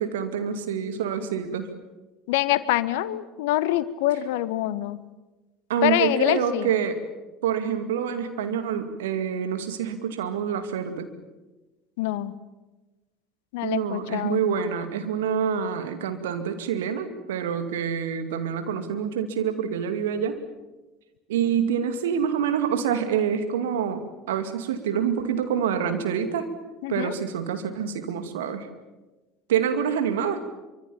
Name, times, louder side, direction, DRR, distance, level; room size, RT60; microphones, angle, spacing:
voice 1, 0.0-1.7 5.7-7.0 7.4-11.1 13.6-20.4 21.3-26.5 26.9-28.7 29.5-30.4, right 8 dB, 65° right, 8 dB, 2.4 m, -26 dB
voice 2, 2.3-5.0 5.8-6.7 12.0-12.3 13.5-14.4 26.8-27.1, left 14 dB, 60° left, 16 dB, 1.1 m, -25 dB
25.5 x 24.5 x 7.3 m, 1.1 s
figure-of-eight pair, 65°, 0 cm